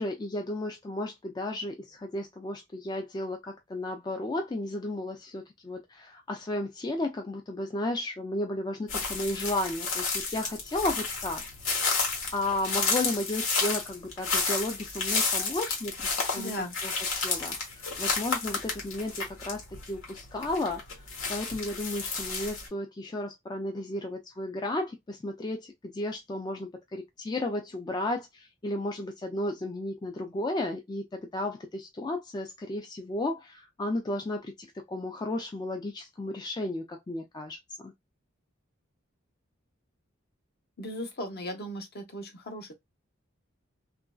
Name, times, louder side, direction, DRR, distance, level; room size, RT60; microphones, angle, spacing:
voice 1, 0.0-11.5 11.8-16.1 16.3-20.8 21.3-37.6 37.8-37.9, left 1 dB, 20° left, 0.3 m, -34 dB
sound 1, 8.9-22.7, left 4 dB, 85° left, 1.3 m, -31 dB
voice 2, 16.4-16.8 40.8-42.7, equal, 55° left, 0.8 m, -37 dB
3.0 x 2.5 x 2.2 m
head